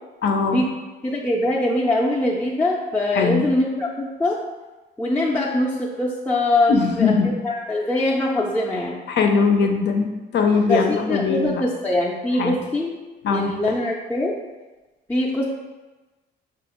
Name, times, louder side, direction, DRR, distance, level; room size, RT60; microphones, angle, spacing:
voice 1, 0.2-0.6 3.1-3.4 6.7-7.3 9.1-11.6 12.4-12.6 13.2-13.5, left 5 dB, 60° left, 4 dB, 0.6 m, -20 dB
voice 2, 1.0-4.4 5.0-6.7 7.0-7.1 7.4-9.0 10.7-12.9 13.3-14.3 15.1-15.4, left 1 dB, 10° left, -5 dB, 0.5 m, -22 dB
5.4 x 2.4 x 2.9 m, 1.2 s
cardioid pair, 90°, 20 cm